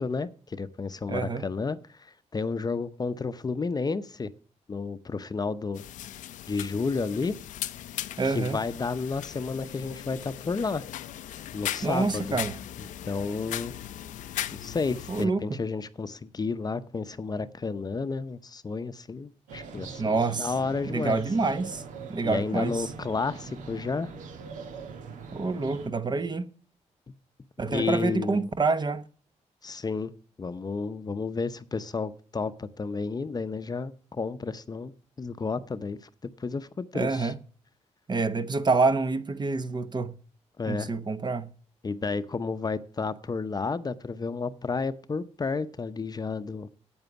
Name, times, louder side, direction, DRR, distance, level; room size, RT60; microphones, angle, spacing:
voice 1, 0.0-4.3 4.7-5.8 6.4-7.4 8.2-10.9 11.5-12.4 12.8-13.7 14.6-21.2 22.2-24.1 27.7-28.5 29.6-30.1 30.4-34.9 35.2-36.1 36.4-37.3 40.6-40.9 41.8-46.7, left 4 dB, 30° left, 0.7 m, -31 dB
voice 2, 1.1-1.4 8.2-8.6 11.8-12.5 15.1-15.4 20.0-20.5 20.8-21.8 22.1-22.9 25.3-26.5 27.6-29.0 36.9-37.3 38.1-40.1 40.7-41.5, right 3 dB, 35° right, 1.1 m, -27 dB
sound 1, 5.8-15.3, left 12 dB, 90° left, 0.6 m, -38 dB
sound 2, 19.5-25.9, right 5 dB, 90° right, 1.5 m, -42 dB
9.1 x 8.8 x 7.0 m
cardioid pair, 80°, 13 cm